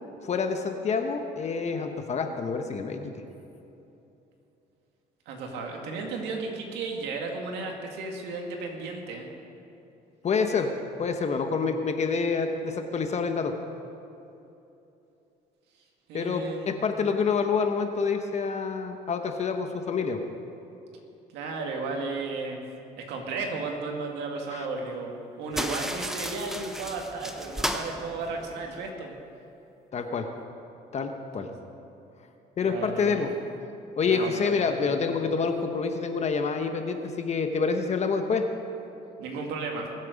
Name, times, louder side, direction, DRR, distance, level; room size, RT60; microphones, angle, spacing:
voice 1, 0.2-3.1 10.2-10.7 11.0-13.5 16.1-20.2 24.5-24.7 29.9-30.3 30.9-31.5 32.6-33.3 34.0-38.4, left 5 dB, 40° left, 5 dB, 1.1 m, -27 dB
voice 2, 5.3-9.3 16.1-16.7 21.3-22.6 23.0-29.1 31.4-31.5 32.6-33.2 34.0-34.5 34.8-35.0 39.2-39.9, right 3 dB, 85° right, 1 dB, 2.2 m, -34 dB
sound 1, 25.5-28.9, equal, 5° right, 0.9 m, -34 dB
22.5 x 7.6 x 5.2 m, 2.9 s
cardioid pair, 110°, 17 cm